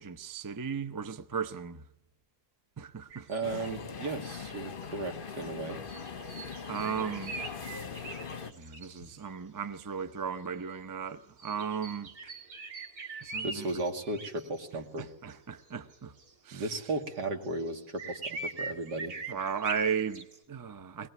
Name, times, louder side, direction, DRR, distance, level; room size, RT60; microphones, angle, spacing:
voice 1, 0.0-1.8 2.8-3.3 6.7-7.3 8.6-12.1 13.2-13.7 15.0-16.1 16.5-16.6 19.3-21.1, right 6 dB, 25° right, 0.4 m, -35 dB
sound 1, 3.1-3.8 4.4-5.4 5.9-9.2 11.4-14.6 15.0-15.1 15.3-15.4 15.7-16.9 17.2-20.4, right 3 dB, 65° right, 2.5 m, -42 dB
voice 2, 3.3-5.8 13.4-15.1 16.5-19.1, right 2 dB, 85° right, 2.8 m, -35 dB
sound 2, 3.4-8.5, left 6 dB, 40° left, 1.0 m, -41 dB
21.5 x 19.5 x 9.3 m
omnidirectional pair, 1.7 m